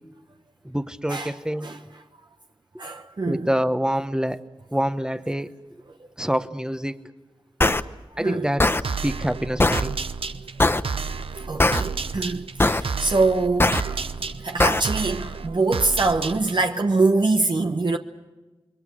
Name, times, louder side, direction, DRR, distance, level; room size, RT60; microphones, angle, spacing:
voice 1, 0.6-1.7 3.2-4.4 4.7-5.5 6.2-7.0 8.2-8.6 9.0-10.0, equal, 10° right, 1.1 m, -26 dB
voice 2, 2.8-3.5 6.0-6.1 8.1-8.5 11.4-18.0, right 3 dB, 55° right, 1.1 m, -24 dB
sound 1, 7.6-7.8 8.6-8.8 9.6-9.8 10.6-10.8 11.6-11.8 12.6-12.8 13.6-13.8 14.6-14.8, left 2 dB, 25° left, 0.9 m, -19 dB
sound 2, 8.8-16.7, right 5 dB, 85° right, 0.9 m, -31 dB
29.0 x 22.5 x 6.3 m
wide cardioid pair, 60°, 9 cm